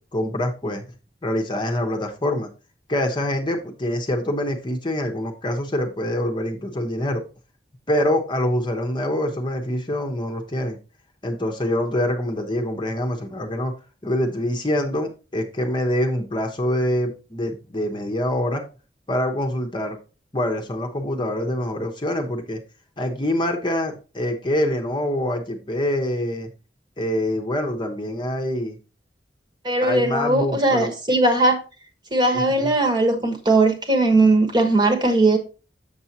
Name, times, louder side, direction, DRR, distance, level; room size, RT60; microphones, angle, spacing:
voice 1, 0.1-0.8 1.2-2.5 2.9-7.2 7.9-10.8 11.2-13.7 14.0-18.6 19.1-20.0 20.3-22.6 23.0-26.5 27.0-28.8 29.8-30.9 32.3-32.7, left 1 dB, 25° left, 0.9 m, -25 dB
voice 2, 29.6-31.6 32.1-35.4, right 2 dB, 25° right, 1.3 m, -19 dB
7.0 x 6.7 x 2.8 m
head